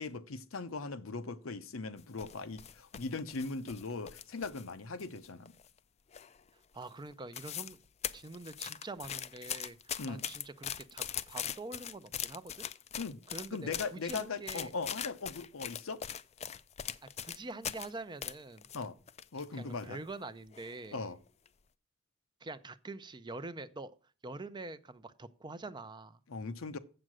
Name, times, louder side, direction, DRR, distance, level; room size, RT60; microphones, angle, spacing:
voice 1, 0.0-5.5 10.0-10.2 13.0-13.2 13.5-16.0 18.7-19.0 19.3-20.0 20.9-21.2 26.3-26.8, left 4 dB, 85° left, 0.8 m, -39 dB
run grass, 2.0-4.7 5.0-5.8 6.1-6.5 6.8-6.9 7.1-7.8 8.0-17.9 18.2-19.5 19.8-19.9 20.5-20.9 21.3-21.5, left 9 dB, 30° left, 0.4 m, -41 dB
voice 2, 6.7-7.8 8.1-12.7 13.3-14.7 17.2-18.7 19.5-21.1 22.4-24.0 24.2-26.2, right 2 dB, 20° right, 0.5 m, -45 dB
7.8 x 7.5 x 6.2 m
head